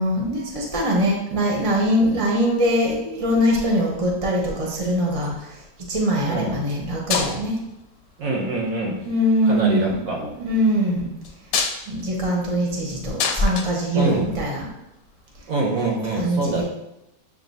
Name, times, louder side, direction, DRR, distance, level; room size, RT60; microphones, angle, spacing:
voice 1, 0.0-5.6 5.9-7.6 9.0-11.1 11.9-14.7 16.2-16.6, equal, 25° right, -1 dB, 0.8 m, -22 dB
sound 1, 4.8-5.5 6.6-6.8 7.1-7.7 8.7-9.1 11.2-14.6 15.9-16.0, left 6 dB, 90° left, 1.2 m, -28 dB
voice 2, 6.3-6.6 8.2-9.0 9.4-10.4 13.9-14.3 15.5-16.6, right 2 dB, 65° right, -1 dB, 1.1 m, -25 dB
7.4 x 2.7 x 2.7 m, 0.88 s
omnidirectional pair, 1.8 m